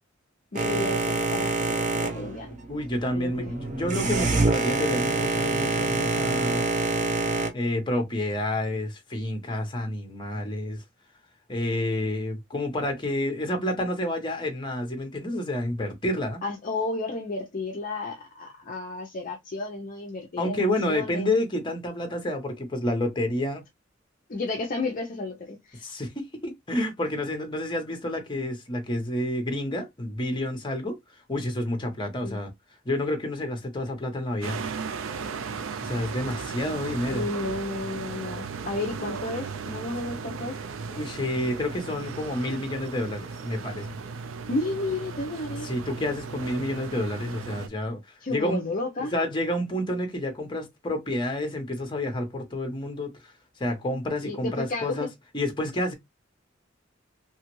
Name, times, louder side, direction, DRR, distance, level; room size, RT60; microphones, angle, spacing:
voice 1, 0.5-2.5 3.1-3.5 16.4-21.3 24.3-25.8 32.2-32.4 37.1-40.6 44.5-45.7 48.2-49.1 54.2-55.1, left 2 dB, 45° left, 0.6 m, -32 dB
Boat Water vehicle, 0.5-7.5, right 3 dB, 40° right, 0.6 m, -26 dB
voice 2, 2.7-6.7 7.5-10.8 11.5-16.4 20.4-23.6 25.8-31.0 31.3-32.5 32.8-34.6 35.8-37.3 40.9-43.9 45.6-48.0 48.3-48.6 49.1-53.1 53.6-55.1 55.3-55.9, left 1 dB, 25° left, 0.9 m, -29 dB
sound 1, 34.4-47.7, right 5 dB, 85° right, 0.4 m, -36 dB
3.0 x 2.3 x 3.0 m
head